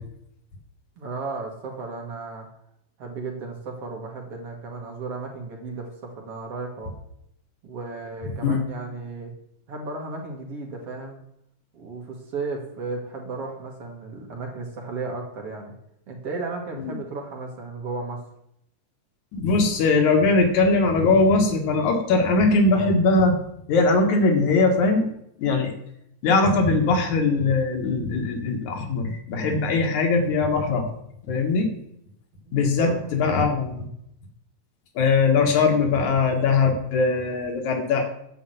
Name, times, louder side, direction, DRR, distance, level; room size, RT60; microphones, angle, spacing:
voice 1, 1.0-2.5 3.0-6.9 7.6-9.3 9.7-11.2 11.7-15.7 16.1-18.2 32.5-33.0, right 3 dB, 55° right, 0 dB, 3.0 m, -34 dB
voice 2, 19.3-23.4 23.7-25.1 25.4-25.8 26.2-30.9 31.2-31.7 32.5-33.9 35.0-38.0, left 3 dB, 90° left, 3 dB, 3.1 m, -21 dB
10.5 x 5.6 x 8.0 m, 0.74 s
omnidirectional pair, 3.3 m